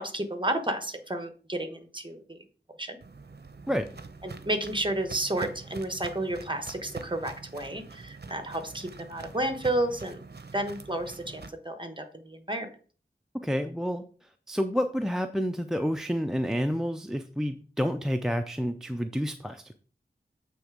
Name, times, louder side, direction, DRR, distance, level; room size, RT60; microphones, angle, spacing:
voice 1, 0.0-2.4 2.8-3.0 4.2-10.2 10.5-12.7, right 1 dB, 25° right, 7 dB, 1.2 m, -31 dB
Walk footsteps, 3.0-11.5, right 4 dB, 60° right, 0.7 m, -45 dB
voice 2, 13.3-19.8, equal, 5° right, 7 dB, 0.4 m, -29 dB
7.8 x 3.4 x 4.9 m, 0.41 s
wide cardioid pair, 50°, 19 cm